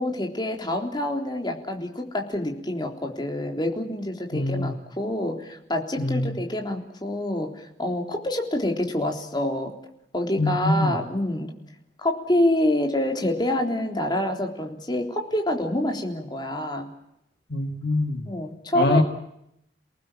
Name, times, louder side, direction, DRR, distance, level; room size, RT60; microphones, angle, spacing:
voice 1, 0.0-9.7 10.1-11.5 12.0-16.9 18.3-19.0, left 1 dB, 25° left, 3 dB, 3.7 m, -27 dB
voice 2, 4.3-4.8 6.0-6.4 10.4-10.9 17.5-18.3 18.7-19.0, left 2 dB, 55° left, 5 dB, 2.1 m, -24 dB
29.0 x 19.0 x 7.4 m, 0.79 s
head